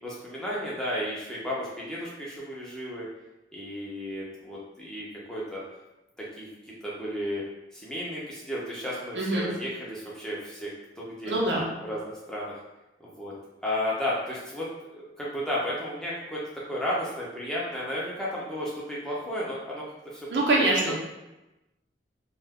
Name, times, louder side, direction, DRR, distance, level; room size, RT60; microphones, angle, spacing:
voice 1, 0.0-3.1 3.5-5.6 6.4-6.5 6.8-7.4 7.7-11.4 11.8-12.5 13.0-13.3 13.6-16.4 16.7-19.8 20.1-20.3 20.7-20.9, equal, 5° left, -6 dB, 0.6 m, -33 dB
voice 2, 9.2-9.5 11.3-11.7 20.3-20.9, right 2 dB, 75° right, -3 dB, 0.7 m, -24 dB
2.4 x 2.3 x 3.5 m, 0.97 s
head